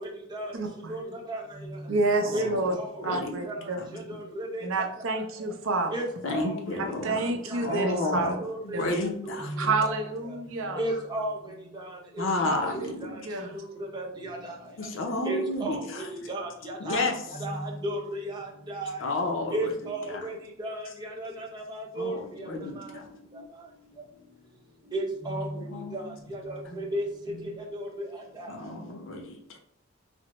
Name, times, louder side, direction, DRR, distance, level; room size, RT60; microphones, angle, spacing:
voice 1, 0.5-1.0 1.9-2.7 3.0-3.9 4.6-6.0 6.8-8.4 8.7-8.9 9.6-10.8 12.4-13.6, right 3 dB, 80° right, 3 dB, 0.5 m, -29 dB
voice 2, 2.2-2.6 3.0-3.4 3.8-4.2 6.2-7.2 7.5-8.4 8.6-9.5 12.2-13.2 14.8-16.3 16.8-17.4 19.0-19.7 20.0-20.3 21.9-23.1 25.4-26.1 26.7-26.8 28.5-29.6, left 2 dB, 70° left, 3 dB, 0.6 m, -32 dB
voice 3, 2.8-3.2 4.4-4.6 5.9-6.0 6.3-6.5 8.4-8.8 10.8-11.3 13.9-14.1 15.3-17.0 17.4-17.6 17.8-18.2 18.8-19.0 19.5-20.3 20.6-20.8 21.2-21.3 21.7-22.1 24.9-25.4 26.8-27.0, right 1 dB, 20° right, -2 dB, 0.6 m, -32 dB
3.4 x 2.0 x 2.9 m, 0.72 s
head